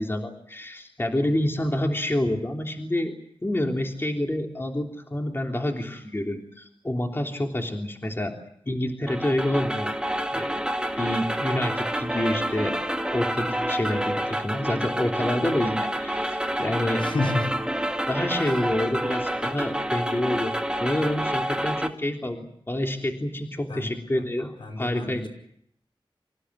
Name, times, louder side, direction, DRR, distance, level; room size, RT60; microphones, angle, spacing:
voice 1, 0.0-3.1 3.4-8.3 8.6-9.9 10.3-10.5 11.0-12.8 13.1-17.0 18.1-20.5 20.8-22.4 22.7-25.3, left 1 dB, 25° left, 2 dB, 3.4 m, -28 dB
sound 1, 9.1-21.9, right 1 dB, 10° right, 2.1 m, -28 dB
voice 2, 17.0-17.6 23.7-23.9 24.6-25.3, left 2 dB, 70° left, 4 dB, 5.3 m, -29 dB
27.0 x 16.5 x 9.8 m, 0.69 s
wide cardioid pair, 75°, 9 cm